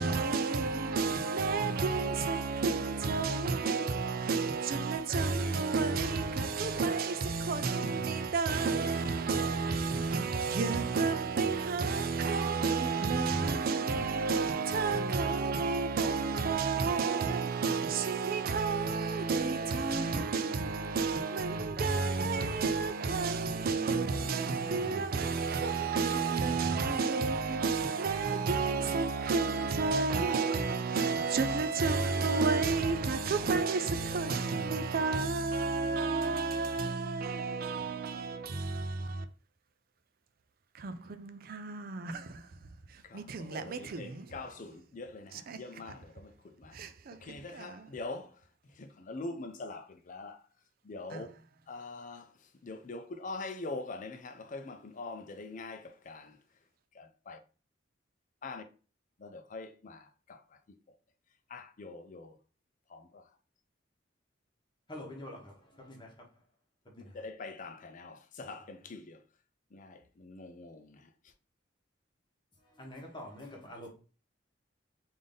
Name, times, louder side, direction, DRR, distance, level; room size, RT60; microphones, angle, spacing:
voice 1, 0.0-39.2 40.7-42.5 42.9-44.4 45.3-45.6 45.8-45.9 46.7-47.2 47.5-47.9 51.1-51.3, right 4 dB, 50° right, 0.4 m, -31 dB
voice 2, 43.5-46.3 46.6-46.7 47.2-48.3 48.8-50.4 50.9-51.3 51.7-52.2 52.6-56.3 57.0-57.4 58.4-58.6 59.2-60.0 60.3-60.4 61.5-62.3 62.9-63.0 67.1-69.2 69.7-70.8, left 3 dB, 45° left, 0.5 m, -43 dB
voice 3, 64.9-66.1 66.8-67.2 72.7-73.9, left 1 dB, 25° left, 1.1 m, -46 dB
3.5 x 2.6 x 3.7 m
head